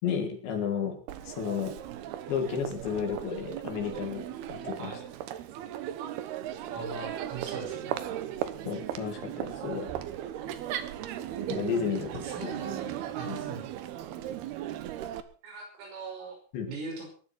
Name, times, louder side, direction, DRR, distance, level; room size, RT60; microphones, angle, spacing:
voice 1, 0.0-1.0 1.3-1.8 2.3-4.9 8.7-9.9 11.5-12.5 13.3-13.4 16.5-16.7, left 7 dB, 65° left, 4 dB, 5.4 m, -32 dB
Crowd, 1.1-15.2, right 11 dB, 70° right, 2.6 m, -37 dB
voice 2, 6.7-8.2 12.2-13.7 15.4-16.4 16.7-17.1, right 3 dB, 90° right, 2 dB, 8.2 m, -41 dB
22.5 x 11.5 x 4.3 m, 0.42 s
omnidirectional pair, 5.6 m